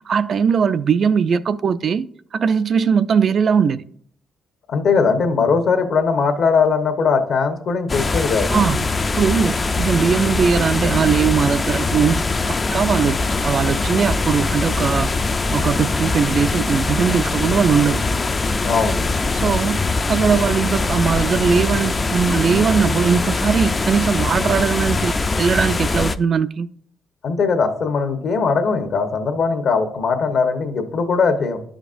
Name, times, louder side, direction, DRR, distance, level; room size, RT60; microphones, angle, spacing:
voice 1, 0.1-3.8 8.5-8.9 9.1-15.1 15.5-18.1 19.3-19.8 20.1-26.7, right 6 dB, 55° right, 0.3 m, -19 dB
voice 2, 4.7-8.6 18.6-19.0 27.2-31.6, left 5 dB, 65° left, 1.0 m, -19 dB
sound 1, 7.9-26.2, left 3 dB, 30° left, 0.4 m, -22 dB
11.5 x 5.1 x 2.5 m
cardioid pair, 90°, 0 cm